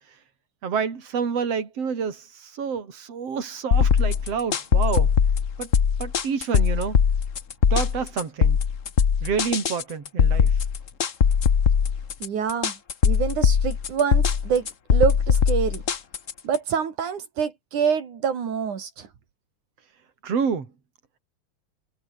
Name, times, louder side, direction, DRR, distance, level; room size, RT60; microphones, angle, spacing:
voice 1, 0.6-5.1 5.6-5.7 6.0-7.0 7.7-8.6 9.2-10.5 20.2-20.7, right 6 dB, 55° right, 4.5 m, -28 dB
sound 1, 3.7-16.6, left 7 dB, 65° left, 0.7 m, -21 dB
voice 2, 12.2-12.7 13.0-14.6 14.9-15.8 16.4-19.1, right 7 dB, 80° right, 4.2 m, -26 dB
omnidirectional pair, 3.4 m